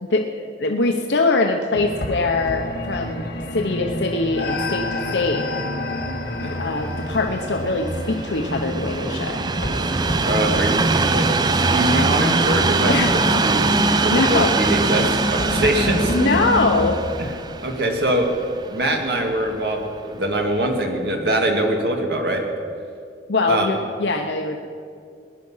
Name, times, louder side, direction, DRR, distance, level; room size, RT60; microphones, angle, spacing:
voice 1, 0.0-3.3 3.5-5.4 6.4-9.4 12.9-13.4 13.9-14.5 16.1-17.0 23.3-24.7, left 3 dB, 85° left, 3 dB, 0.9 m, -22 dB
sound 1, 1.7-16.9, left 1 dB, 60° left, 1.9 m, -27 dB
Train, 6.5-19.7 20.4-20.5, right 4 dB, 25° right, 0.4 m, -23 dB
voice 2, 10.2-13.0 13.4-16.3 17.2-17.3 17.6-18.4 18.7-22.4 23.5-23.7, right 1 dB, 65° right, 2 dB, 2.0 m, -23 dB
19.5 x 10.5 x 5.6 m, 2.3 s
head